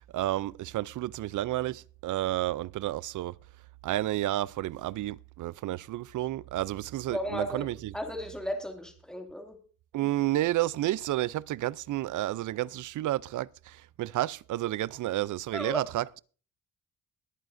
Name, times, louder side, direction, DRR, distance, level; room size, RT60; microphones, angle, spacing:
voice 1, 0.0-3.3 3.8-7.9 9.9-16.2, right 15 dB, 65° right, 0.5 m, -31 dB
voice 2, 7.1-9.6 15.5-15.8, equal, ahead, 2.4 m, -35 dB
21.5 x 9.1 x 2.6 m
cardioid pair, 95°, 33 cm